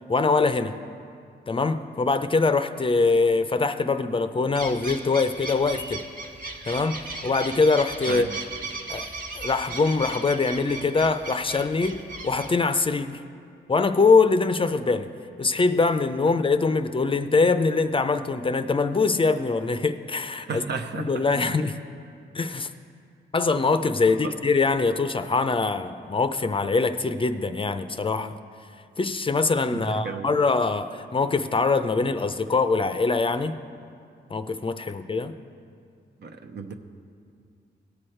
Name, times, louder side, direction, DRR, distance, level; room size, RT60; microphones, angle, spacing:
voice 1, 0.1-0.8 1.5-6.1 6.7-8.3 8.9-13.2 13.7-15.1 15.4-20.6 20.9-21.8 22.3-22.7 23.3-28.4 29.0-33.6 34.3-35.3, left 4 dB, 30° left, 10 dB, 0.5 m, -23 dB
sound 1, 4.5-12.5, right 2 dB, 50° right, 1.4 m, -37 dB
voice 2, 20.5-21.5 24.1-24.3 29.7-30.3 36.2-36.7, right 4 dB, 65° right, 6 dB, 0.8 m, -33 dB
17.5 x 6.3 x 4.4 m, 2.4 s
cardioid pair, 70°, 19 cm